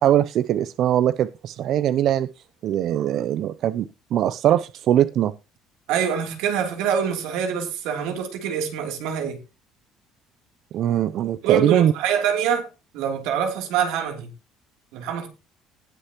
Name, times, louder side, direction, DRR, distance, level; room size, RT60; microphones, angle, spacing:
voice 1, 0.0-2.3 2.6-5.3 10.7-11.9, right 11 dB, 55° right, 0.5 m, -21 dB
voice 2, 5.9-9.4 11.4-12.7 12.9-14.3 14.9-15.3, right 8 dB, 85° right, 3.0 m, -25 dB
19.0 x 6.5 x 2.9 m
cardioid pair, 140°, 0 cm